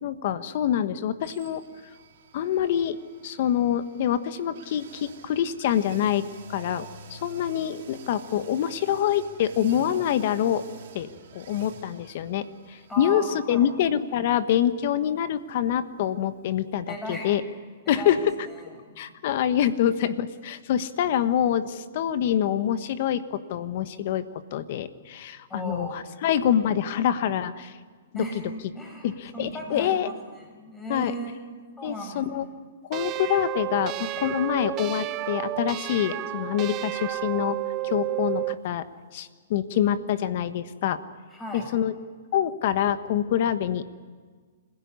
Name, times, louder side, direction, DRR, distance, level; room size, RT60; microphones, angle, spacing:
voice 1, 0.0-1.6 2.3-3.0 3.2-10.6 10.9-11.1 11.3-17.4 17.9-18.3 19.0-24.2 24.5-27.8 28.1-28.4 29.0-30.1 30.9-31.1 31.8-32.5 32.9-37.6 37.8-38.8 39.1-41.0 41.5-41.9 42.3-43.8, left 10 dB, 55° left, 12 dB, 1.3 m, -26 dB
sound 1, 1.2-17.0 17.3-17.4, right 5 dB, 60° right, 3.5 m, -49 dB
voice 2, 12.9-13.7 16.9-17.3 17.8-18.2 18.9-19.0 25.5-26.0 28.1-28.4 28.7-31.4 31.8-32.5 41.3-41.7, equal, 10° left, 1 dB, 6.8 m, -36 dB
sound 2, 32.9-38.6, right 17 dB, 30° right, 0.6 m, -31 dB
26.0 x 16.5 x 9.7 m, 1.5 s
hypercardioid pair, 140°, 0 cm